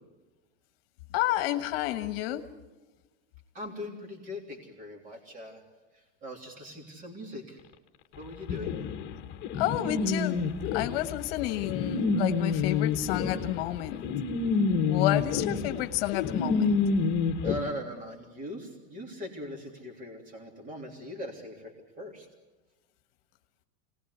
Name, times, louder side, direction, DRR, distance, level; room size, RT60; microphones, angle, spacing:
voice 1, 1.1-2.4 9.5-10.4 10.7-14.0 14.7-16.7, left 14 dB, 55° left, 9 dB, 1.4 m, -30 dB
voice 2, 3.5-5.6 5.9-7.6 8.1-8.7 17.4-22.3, left 1 dB, 25° right, 3 dB, 3.4 m, -40 dB
sound 1, 8.5-17.6, left 5 dB, 30° left, 1.7 m, -28 dB
26.0 x 19.5 x 9.8 m, 1.1 s
supercardioid pair, 170°, 35 cm